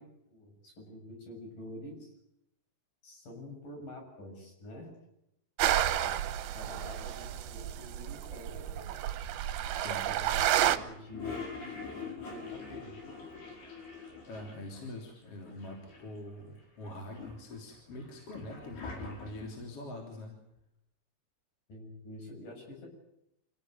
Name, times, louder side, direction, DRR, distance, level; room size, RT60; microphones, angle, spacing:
voice 1, 0.0-2.1 3.0-4.9 5.9-6.2 6.5-8.9 10.1-13.0 21.7-22.9, left 1 dB, 50° left, 2 dB, 8.8 m, -47 dB
sound 1, 5.6-10.8, right 12 dB, 75° right, 2.8 m, -30 dB
voice 2, 9.7-10.1 14.3-20.4, left 1 dB, 35° left, 1 dB, 4.1 m, -44 dB
Toilet flush, 10.5-14.9 15.2-15.3 15.5-16.3 16.8-19.6, left 5 dB, 70° left, 7.2 m, -44 dB
27.0 x 17.5 x 9.4 m, 0.82 s
omnidirectional pair, 4.7 m